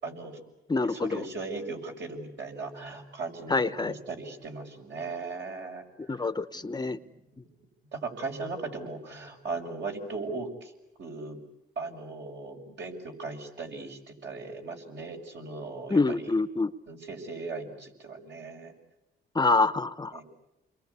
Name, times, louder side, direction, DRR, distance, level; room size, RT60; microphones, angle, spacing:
voice 1, 0.0-0.4 0.9-6.2 6.5-7.1 7.9-10.7 11.0-11.4 11.8-16.3 16.9-18.7 20.1-20.2, right 3 dB, 60° right, 2 dB, 6.3 m, -38 dB
voice 2, 0.7-1.2 3.5-4.0 6.1-7.0 15.9-16.7 19.3-20.2, left 3 dB, 20° left, 13 dB, 0.9 m, -26 dB
29.5 x 22.5 x 8.4 m, 0.95 s
cardioid pair, 90°, 20 cm